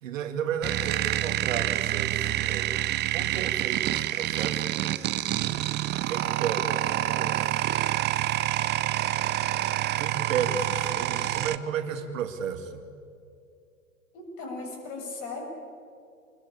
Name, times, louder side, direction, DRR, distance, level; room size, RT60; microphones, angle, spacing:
voice 1, 0.0-2.8 3.1-5.7 6.1-8.5 10.0-12.8, right 7 dB, 65° right, 7 dB, 2.2 m, -34 dB
sound 1, 0.6-11.6, right 14 dB, 25° right, 0.7 m, -27 dB
voice 2, 10.9-11.4 14.1-15.4, left 3 dB, 45° left, 1 dB, 7.2 m, -38 dB
25.5 x 20.5 x 8.7 m, 2.4 s
figure-of-eight pair, 95°, 42 cm